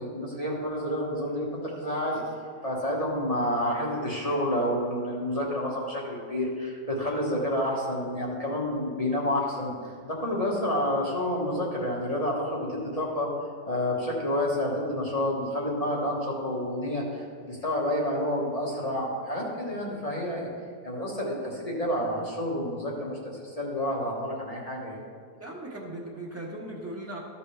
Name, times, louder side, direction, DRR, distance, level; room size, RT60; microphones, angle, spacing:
voice 1, 0.0-13.3 13.6-20.5 20.8-25.0, left 1 dB, 25° left, -3 dB, 1.3 m, -29 dB
voice 2, 25.4-27.2, right 1 dB, 10° right, -3 dB, 1.3 m, -38 dB
14.0 x 5.5 x 3.3 m, 2.2 s
omnidirectional pair, 1.7 m